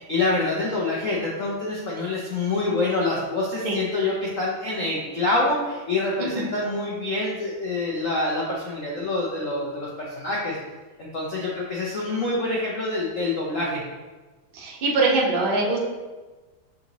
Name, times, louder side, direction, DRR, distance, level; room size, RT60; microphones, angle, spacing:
voice 1, 0.1-10.6 11.0-13.8, left 2 dB, 70° left, -5 dB, 0.7 m, -26 dB
voice 2, 6.2-6.5 14.5-15.8, right 3 dB, 70° right, -3 dB, 0.5 m, -23 dB
6.6 x 2.7 x 2.9 m, 1.2 s
omnidirectional pair, 2.3 m